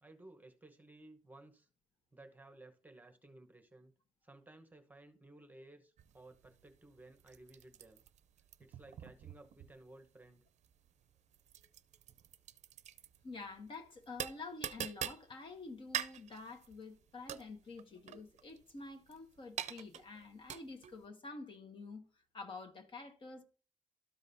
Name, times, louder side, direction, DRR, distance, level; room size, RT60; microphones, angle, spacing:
voice 1, 0.0-1.7 2.1-3.9 4.2-8.0 8.6-10.4, right 2 dB, 15° right, 1.0 m, -57 dB
sound 1, 6.0-21.0, right 10 dB, 70° right, 0.5 m, -46 dB
voice 2, 13.2-22.0 22.3-23.4, left 3 dB, 45° left, 1.4 m, -48 dB
13.0 x 5.2 x 2.7 m
cardioid pair, 130°, 12 cm